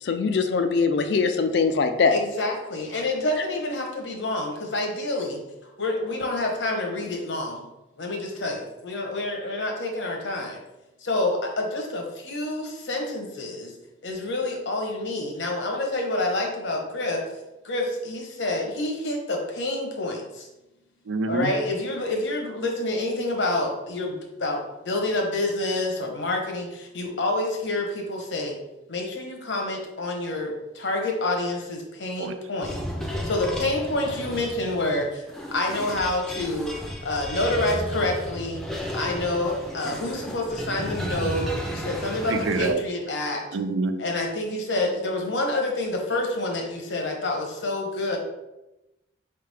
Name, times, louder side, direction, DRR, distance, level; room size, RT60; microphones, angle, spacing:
voice 1, 0.0-2.2, left 4 dB, 65° left, 7 dB, 0.4 m, -22 dB
voice 2, 2.1-7.7 8.0-10.6 11.0-13.7 14.0-17.2 17.6-20.5 21.3-28.6 28.9-32.8 33.2-35.2 35.5-36.7 37.0-38.6 38.9-43.4 44.0-48.2, left 2 dB, 80° left, 1 dB, 1.0 m, -28 dB
voice 3, 21.1-21.5 32.2-32.3 42.3-42.8 43.5-44.0, right 3 dB, 85° right, 9 dB, 0.4 m, -26 dB
sound 1, 32.6-42.7, equal, ahead, 0.5 m, -34 dB
4.7 x 3.4 x 3.3 m, 0.97 s
head